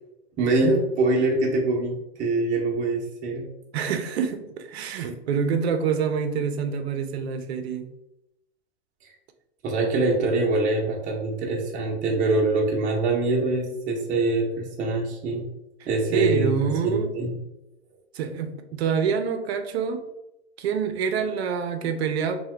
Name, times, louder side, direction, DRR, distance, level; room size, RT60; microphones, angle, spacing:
voice 1, 0.4-3.4 5.0-5.1 9.0-9.1 9.6-15.5 15.9-17.4, right 2 dB, 25° right, -1 dB, 0.6 m, -24 dB
voice 2, 3.7-7.9 16.1-17.1 18.1-20.0 20.6-22.4, right 6 dB, 65° right, 7 dB, 0.5 m, -26 dB
2.8 x 2.2 x 3.2 m, 0.87 s
hypercardioid pair, 130°, 34 cm